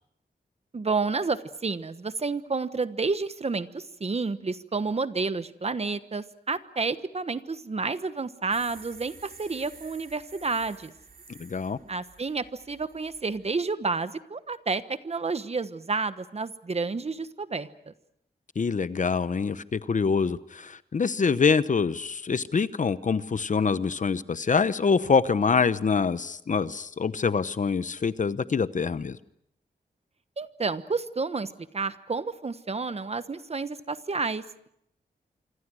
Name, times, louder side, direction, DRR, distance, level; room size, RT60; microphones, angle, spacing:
voice 1, 0.7-10.9 11.9-17.9 30.4-34.7, right 4 dB, 35° right, 12 dB, 1.2 m, -30 dB
sound 1, 8.5-13.5, right 4 dB, 55° right, 4.0 m, -51 dB
voice 2, 11.4-11.8 18.6-29.2, left 5 dB, 50° left, 14 dB, 0.9 m, -25 dB
27.0 x 25.5 x 6.3 m, 0.75 s
wide cardioid pair, 120°, 17 cm